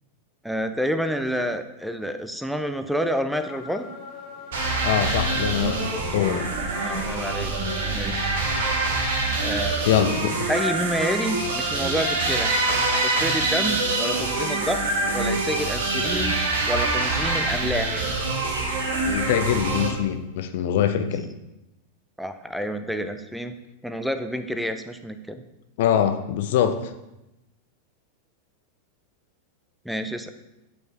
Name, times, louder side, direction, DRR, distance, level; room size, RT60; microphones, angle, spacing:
voice 1, 0.4-3.9 6.8-7.5 7.9-8.3 9.4-9.8 10.5-12.5 13.0-14.8 15.1-16.4 16.7-18.1 22.2-23.6 23.8-25.4 29.8-30.3, equal, ahead, 9 dB, 0.4 m, -28 dB
sound 1, 3.4-9.0, left 5 dB, 35° left, 1.2 m, -42 dB
sound 2, 4.5-19.9, right 3 dB, 60° right, 1.3 m, -25 dB
voice 2, 4.8-6.5 9.8-10.3 19.0-21.3 25.8-26.9, left 9 dB, 55° left, 9 dB, 0.5 m, -23 dB
Bird vocalization bird call bird song, 12.2-15.1 15.4-20.1, equal, 90° right, 1.1 m, -36 dB
8.3 x 4.4 x 3.2 m, 0.92 s
figure-of-eight pair, 90°, 0 cm